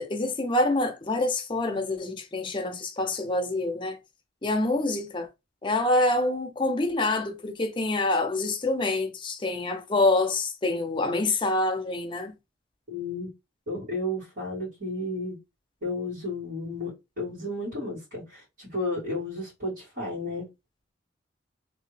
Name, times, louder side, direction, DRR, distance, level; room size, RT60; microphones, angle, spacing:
voice 1, 0.0-4.0 4.4-5.3 5.6-12.3, left 2 dB, 25° left, 0.7 m, -26 dB
voice 2, 12.9-13.3 13.7-15.4 15.8-20.5, left 2 dB, 55° right, 2.2 m, -33 dB
3.2 x 2.7 x 3.2 m
head